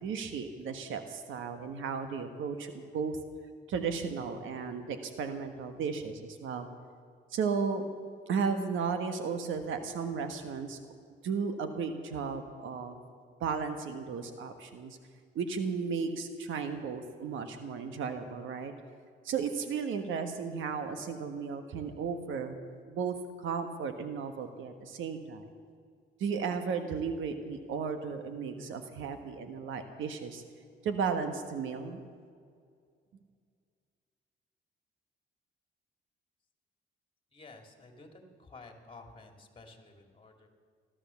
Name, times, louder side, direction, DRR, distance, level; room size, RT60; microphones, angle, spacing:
voice 1, 0.0-3.2 3.7-6.7 7.3-7.9 8.3-10.8 11.2-13.0 13.4-15.0 15.3-18.7 19.2-22.6 22.9-25.4 26.2-30.4 30.8-32.0, right 5 dB, 80° right, 7 dB, 1.3 m, -34 dB
voice 2, 37.3-40.5, left 3 dB, 25° left, 3 dB, 2.7 m, -52 dB
15.5 x 13.0 x 7.1 m, 2.1 s
cardioid pair, 90°, 20 cm